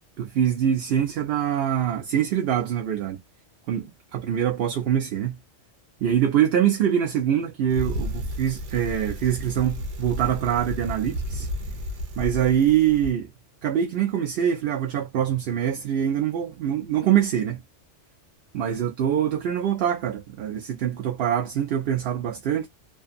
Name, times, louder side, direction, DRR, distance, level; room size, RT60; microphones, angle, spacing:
voice 1, 0.2-3.2 3.7-5.4 6.0-11.5 12.2-13.3 13.6-17.6 18.5-22.7, right 9 dB, 65° right, 0.7 m, -24 dB
Bicycle, 7.7-13.1, equal, 85° right, 1.0 m, -32 dB
2.5 x 2.4 x 2.5 m
omnidirectional pair, 1.2 m